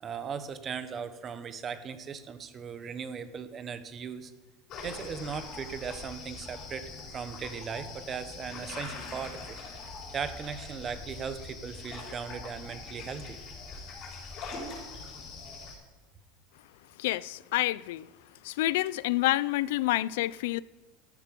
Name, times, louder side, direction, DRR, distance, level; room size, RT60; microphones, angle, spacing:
voice 1, 0.0-4.3 4.8-9.6 10.1-13.4, right 6 dB, 30° right, 1.0 m, -38 dB
sound 1, 4.7-15.7, left 3 dB, 45° left, 5.0 m, -43 dB
voice 2, 17.0-18.0 18.4-20.6, left 17 dB, 80° left, 0.4 m, -28 dB
13.5 x 10.0 x 5.3 m
supercardioid pair, 140°, 0 cm